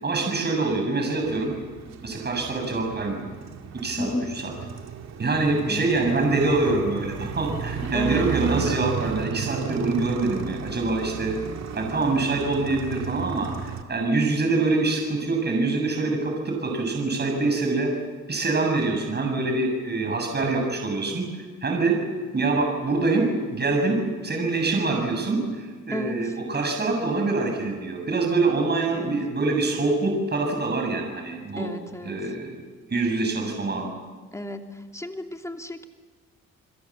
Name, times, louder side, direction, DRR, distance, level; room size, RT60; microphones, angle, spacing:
voice 1, 0.0-1.5 2.0-3.3 3.7-4.5 5.2-11.4 11.7-17.9 18.3-22.0 22.3-24.0 24.2-31.7 32.0-32.6 32.9-33.9, right 3 dB, 35° right, 2 dB, 7.0 m, -25 dB
Motorcycle, 1.2-13.8, right 6 dB, 60° right, 2.4 m, -34 dB
voice 2, 4.0-4.3 5.7-5.9 7.9-8.3 25.9-26.2 28.9-29.1 31.6-32.1 34.3-34.6 34.9-35.9, left 1 dB, 10° left, 4 dB, 2.8 m, -32 dB
30.0 x 22.0 x 7.4 m, 1.5 s
cardioid pair, 90°, 30 cm